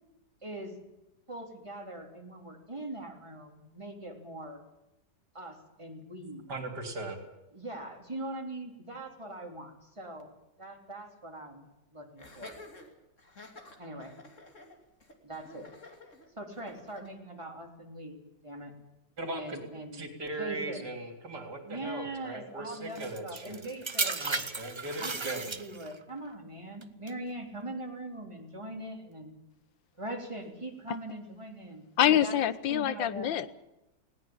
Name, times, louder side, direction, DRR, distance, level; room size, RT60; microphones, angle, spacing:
voice 1, 0.4-0.7 1.3-4.6 5.3-6.4 7.5-10.3 10.6-12.6 13.8-14.1 15.2-15.7 16.4-18.2 18.4-18.7 19.3-20.0 20.4-20.9 21.6-24.3 25.0-29.3 30.0-32.4 32.7-33.5, right 1 dB, 15° right, 2 dB, 3.5 m, -41 dB
voice 2, 6.5-7.2 19.2-19.6 19.9-23.6 24.2-25.5, right 2 dB, 60° right, 6 dB, 4.0 m, -39 dB
Laughter, 12.2-17.1, left 2 dB, 40° left, 3.1 m, -50 dB
sound 1, 22.9-26.0 26.8-27.1, right 4 dB, 35° right, 0.4 m, -34 dB
voice 3, 32.0-33.5, left 10 dB, 90° left, 15 dB, 1.7 m, -25 dB
20.0 x 18.0 x 8.7 m, 0.94 s
omnidirectional pair, 2.0 m